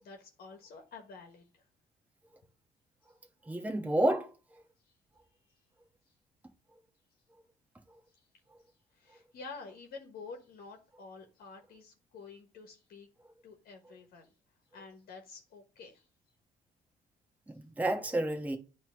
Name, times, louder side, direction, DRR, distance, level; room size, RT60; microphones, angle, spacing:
voice 1, 0.0-1.6 5.4-5.6 8.1-8.2 8.9-13.1 13.4-14.3 14.7-16.1, left 4 dB, 65° left, 1.3 m, -49 dB
voice 2, 3.5-4.3 17.5-18.6, right 1 dB, 10° right, 1.2 m, -30 dB
9.0 x 3.1 x 6.3 m
cardioid pair, 110°, 17 cm